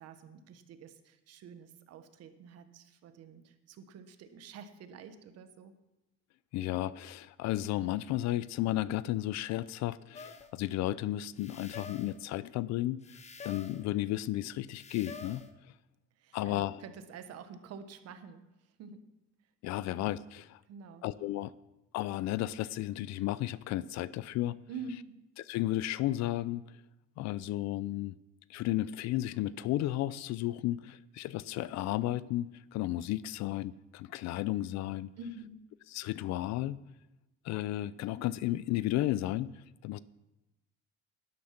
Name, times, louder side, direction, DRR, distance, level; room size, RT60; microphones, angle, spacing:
voice 1, 0.0-5.7 16.2-19.0 19.7-19.9 20.6-21.0 24.7-25.2 35.2-35.7, right 4 dB, 55° right, 9 dB, 1.3 m, -48 dB
voice 2, 6.5-13.2 13.4-15.5 16.3-16.8 19.6-20.6 21.0-21.5 21.9-24.6 25.4-26.6 27.2-28.1 28.5-35.1 35.9-36.8 37.4-40.0, left 15 dB, 65° left, 19 dB, 0.5 m, -33 dB
sound 1, 10.1-10.5 11.4-12.2 13.0-13.8 14.7-15.5 16.3-16.4, left 4 dB, 25° left, 0.9 m, -47 dB
12.0 x 10.5 x 5.8 m, 0.99 s
cardioid pair, 135°, 30 cm